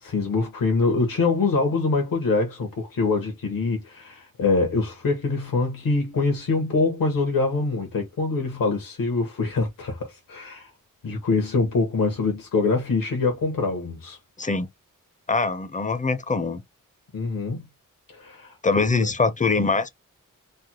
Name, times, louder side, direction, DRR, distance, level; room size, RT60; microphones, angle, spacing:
voice 1, 0.0-10.7 11.0-14.2 17.1-17.6 18.1-18.5 18.8-19.1, left 3 dB, 85° left, 1.0 m, -24 dB
voice 2, 15.3-16.6 18.6-19.9, left 4 dB, 25° left, 0.4 m, -23 dB
3.3 x 2.0 x 2.8 m
wide cardioid pair, 75°, 33 cm